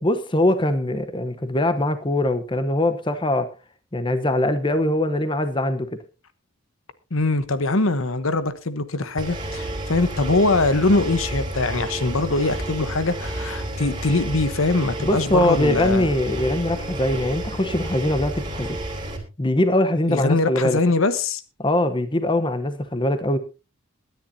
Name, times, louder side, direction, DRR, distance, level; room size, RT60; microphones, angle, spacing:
voice 1, 0.0-3.5 3.9-5.9 15.0-18.8 19.4-20.8 21.6-23.4, left 1 dB, 20° left, 10 dB, 0.9 m, -22 dB
voice 2, 7.1-16.1 20.1-21.4, left 2 dB, 65° left, 12 dB, 1.1 m, -22 dB
Engine, 9.2-19.2, right 1 dB, 20° right, 2.7 m, -31 dB
22.0 x 10.5 x 2.8 m, 0.30 s
head